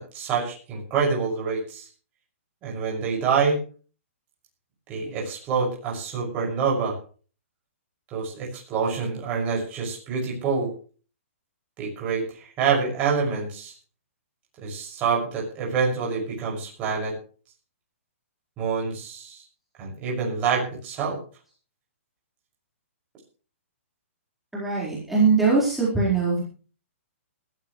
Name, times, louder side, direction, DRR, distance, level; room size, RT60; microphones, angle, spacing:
voice 1, 0.0-1.9 2.6-3.6 4.9-6.9 8.1-10.7 11.8-13.7 14.6-17.1 18.6-19.4 19.8-21.2, right 5 dB, 20° right, -3 dB, 6.2 m, -26 dB
voice 2, 24.5-26.4, right 4 dB, ahead, -8 dB, 4.5 m, -21 dB
20.5 x 14.0 x 3.2 m, 0.41 s
hypercardioid pair, 165°, 7 cm